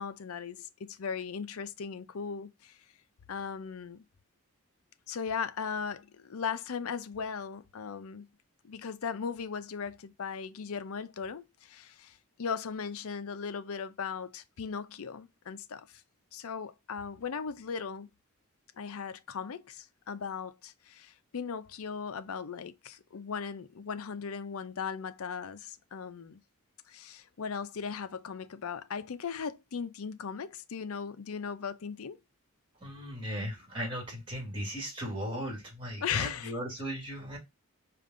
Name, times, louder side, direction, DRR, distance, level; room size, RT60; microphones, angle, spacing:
voice 1, 0.0-2.8 3.3-4.0 5.1-8.3 8.6-15.9 16.3-18.1 18.8-26.4 26.9-32.2 36.0-36.5, left 6 dB, 75° left, 0.5 m, -38 dB
voice 2, 32.8-37.4, equal, 25° right, 2.1 m, -37 dB
5.1 x 2.5 x 3.6 m
head